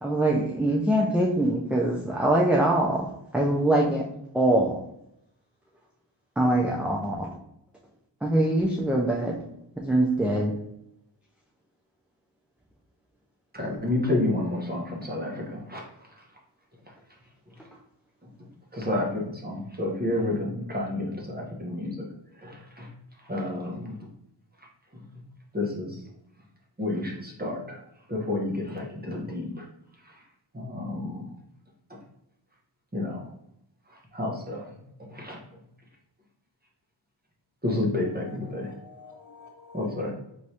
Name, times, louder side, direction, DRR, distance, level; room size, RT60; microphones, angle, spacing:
voice 1, 0.0-3.1 3.3-4.0 4.3-4.8 6.4-7.3 8.2-9.4 9.8-10.5, right 1 dB, 5° right, 0.4 m, -23 dB
voice 2, 13.5-15.8 18.7-22.0 22.4-22.9 23.3-23.9 25.5-26.0 26.8-27.8 28.1-29.6 30.5-31.2 32.9-33.3 34.1-34.6 35.1-35.4 37.6-38.7 39.7-40.1, left 2 dB, 20° right, 1.0 m, -30 dB
voice 3, 38.0-40.1, left 2 dB, 40° left, 1.2 m, -48 dB
4.8 x 3.1 x 2.8 m
wide cardioid pair, 110°, 45 cm